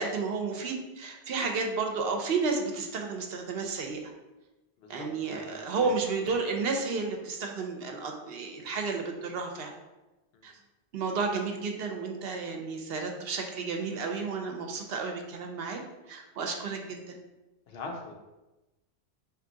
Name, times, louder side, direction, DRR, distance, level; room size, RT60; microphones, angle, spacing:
voice 1, 0.0-4.1 4.9-9.7 10.4-10.5 10.9-15.8 16.1-17.2, right 4 dB, 70° right, 3 dB, 0.8 m, -32 dB
voice 2, 4.8-5.9 10.3-10.5 17.7-18.1, left 3 dB, 70° left, 2 dB, 0.9 m, -42 dB
3.5 x 2.9 x 3.8 m, 1.1 s
omnidirectional pair, 1.1 m